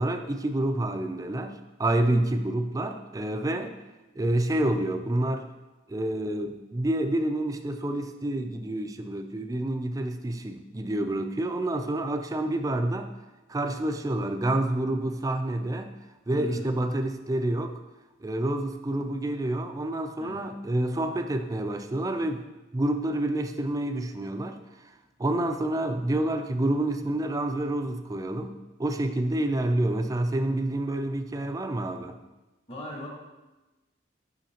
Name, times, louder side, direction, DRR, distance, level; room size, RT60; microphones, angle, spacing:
voice 1, 0.0-3.7 4.2-5.4 5.9-13.1 13.5-15.9 16.3-17.7 18.2-22.4 22.7-24.6 25.2-32.2, right 1 dB, 20° right, 7 dB, 0.4 m, -28 dB
voice 2, 16.3-16.7 20.2-20.7 32.7-33.1, equal, 30° left, -1 dB, 1.3 m, -40 dB
9.0 x 5.8 x 2.9 m, 1.1 s
head